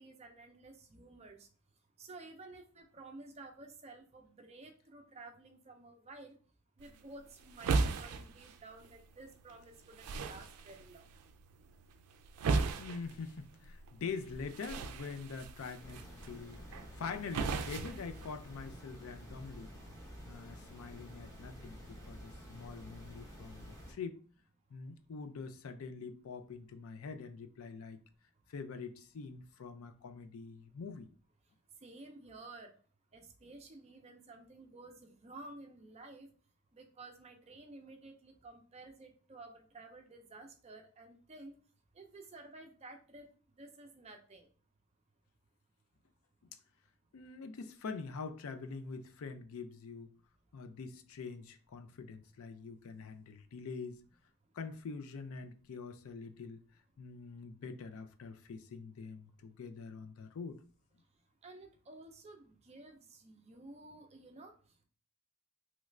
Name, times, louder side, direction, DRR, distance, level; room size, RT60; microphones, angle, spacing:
voice 1, 0.0-1.5 2.0-6.4 6.8-11.1 31.8-32.7 33.1-36.3 36.7-41.5 41.9-43.3 43.5-44.5 61.4-64.8, right 2 dB, 30° right, 0.4 m, -53 dB
sound 1, 6.8-18.8, right 4 dB, 90° right, 0.4 m, -38 dB
voice 2, 12.8-16.6 17.0-19.7 20.3-24.2 24.7-28.0 28.5-31.1 47.1-50.1 50.5-54.0 54.5-56.6 57.0-60.6, left 4 dB, 70° left, 0.4 m, -45 dB
sound 2, 15.8-23.9, equal, 15° left, 0.7 m, -51 dB
3.1 x 2.4 x 3.1 m
head